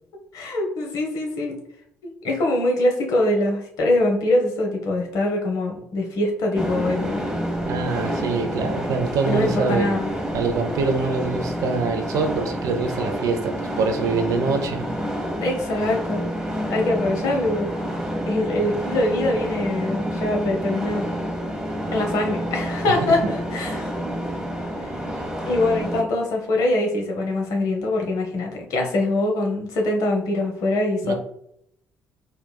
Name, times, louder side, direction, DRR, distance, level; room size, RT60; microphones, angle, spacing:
voice 1, 0.3-1.6 2.0-7.3 9.3-10.1 15.4-16.3 16.7-17.7 18.3-21.0 21.9-23.9 25.5-31.1, left 1 dB, 60° left, 1 dB, 0.8 m, -23 dB
sound 1, 6.5-26.0, equal, 10° right, 0.7 m, -28 dB
voice 2, 7.6-9.9 10.3-14.9 23.1-23.2 31.0-31.1, right 4 dB, 60° right, 5 dB, 0.5 m, -24 dB
4.1 x 2.1 x 2.2 m, 0.72 s
figure-of-eight pair, 50°, 7 cm